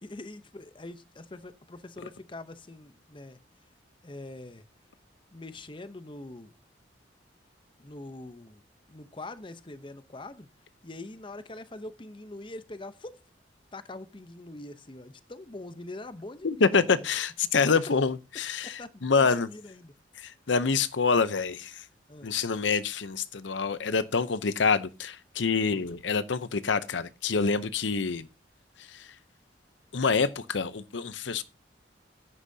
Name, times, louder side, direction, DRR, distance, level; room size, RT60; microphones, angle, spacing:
voice 1, 0.0-3.4 4.0-4.6 5.3-6.5 7.8-8.6 8.9-10.5 10.8-13.2 13.7-16.9 18.6-19.9 22.1-22.4 25.7-25.8, left 2 dB, 25° left, 0.8 m, -43 dB
voice 2, 16.4-19.5 20.2-21.8 22.2-28.3 28.9-29.1 29.9-31.4, left 5 dB, 75° left, 0.7 m, -26 dB
14.5 x 10.0 x 2.7 m
head